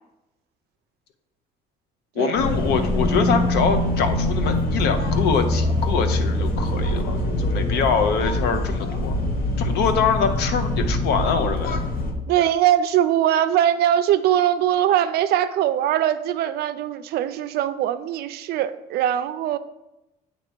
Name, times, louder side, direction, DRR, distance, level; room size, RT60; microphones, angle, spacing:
voice 1, 2.2-9.2 9.6-11.8, left 6 dB, 80° left, 7 dB, 0.7 m, -24 dB
sound 1, 2.4-12.1, left 1 dB, 60° left, 1.1 m, -23 dB
voice 2, 12.3-19.6, right 11 dB, 70° right, 12 dB, 0.4 m, -21 dB
7.7 x 2.9 x 4.4 m, 0.94 s
cardioid pair, 110°, 17 cm